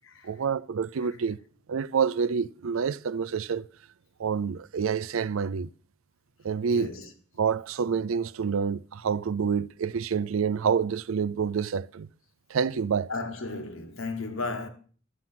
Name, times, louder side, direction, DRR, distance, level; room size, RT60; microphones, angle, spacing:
voice 1, 0.2-1.4 1.7-3.7 4.2-5.7 6.4-6.9 7.4-12.1 12.5-13.1, right 6 dB, 75° right, 0.4 m, -27 dB
voice 2, 6.7-7.1 13.1-14.7, left 3 dB, 70° left, 1.6 m, -34 dB
13.5 x 7.6 x 5.8 m
head